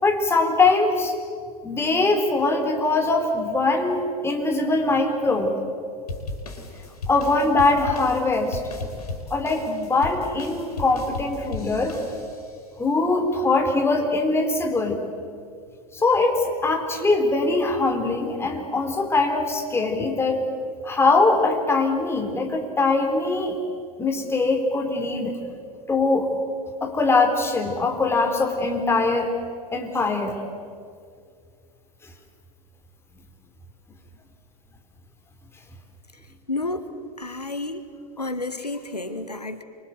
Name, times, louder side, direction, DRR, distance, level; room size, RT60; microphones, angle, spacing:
voice 1, 0.0-1.2 1.6-5.5 7.1-8.6 9.3-11.9 12.8-15.0 15.9-20.4 20.8-23.6 24.0-25.4 25.9-26.3 26.8-29.3 29.7-30.4, left 3 dB, 10° left, 3 dB, 4.2 m, -22 dB
sound 1, 6.1-12.6, left 3 dB, 70° left, 5.1 m, -36 dB
voice 2, 36.5-36.9 37.2-37.8 38.2-39.6, left 2 dB, 90° left, 10 dB, 1.5 m, -30 dB
27.0 x 24.0 x 8.1 m, 2.2 s
figure-of-eight pair, 95°, 20 cm